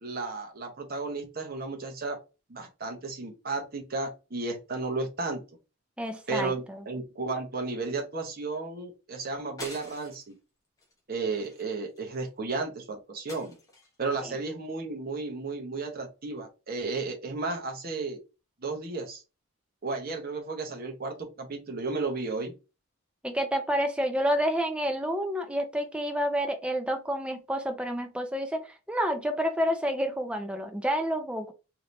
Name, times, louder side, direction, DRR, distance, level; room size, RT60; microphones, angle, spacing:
voice 1, 0.0-2.2 2.5-5.4 6.3-10.3 11.1-13.6 14.0-18.2 18.6-19.2 19.8-22.5, right 3 dB, 45° right, 3 dB, 0.8 m, -33 dB
voice 2, 6.0-6.8 14.2-14.3 23.2-31.5, equal, 5° right, 6 dB, 0.5 m, -29 dB
sound 1, 9.6-10.3 10.8-11.0 11.3-12.3 13.3-14.1, left 1 dB, 15° left, 0.9 m, -46 dB
3.2 x 2.7 x 2.6 m, 0.30 s
head